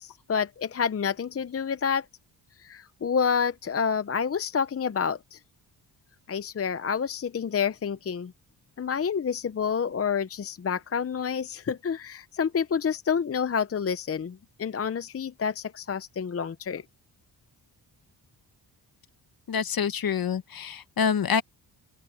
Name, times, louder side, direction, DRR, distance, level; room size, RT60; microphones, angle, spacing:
voice 1, 0.0-2.0 2.6-5.4 6.3-8.3 8.8-16.8, left 6 dB, 35° left, 0.7 m, -28 dB
voice 2, 19.5-21.4, left 7 dB, 55° left, 1.4 m, -26 dB
open air
cardioid pair, 85°, 43 cm